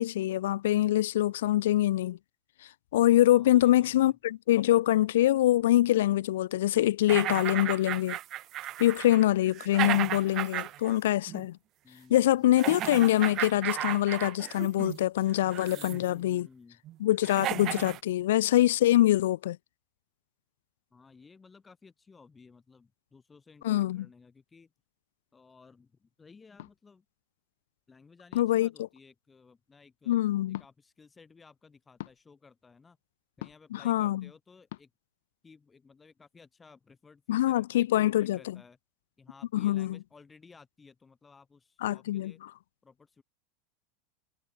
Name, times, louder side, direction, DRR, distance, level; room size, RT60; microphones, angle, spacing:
voice 1, 0.0-2.2 2.9-8.2 8.8-11.6 12.1-16.5 17.0-19.6 23.6-24.1 28.4-28.7 30.1-30.6 33.7-34.2 37.3-38.6 39.5-40.0 41.8-42.3, left 14 dB, 85° left, 0.4 m, -24 dB
voice 2, 3.3-4.2 11.8-12.5 15.7-16.8 20.9-24.7 25.3-27.0 27.9-30.2 30.5-33.0 33.4-34.9 35.4-38.8 39.2-42.4 42.8-43.2, left 4 dB, 10° left, 5.5 m, -56 dB
sound 1, 7.1-11.0 11.3-11.4 12.5-15.0 15.5-16.1 16.8-16.9 17.2-18.0, right 14 dB, 30° right, 0.9 m, -34 dB
sound 2, 26.6-26.8 28.3-28.6 30.5-30.7 32.0-32.2 33.4-33.7 34.7-34.8, left 16 dB, 65° left, 5.7 m, -43 dB
supercardioid pair, 175°, 0 cm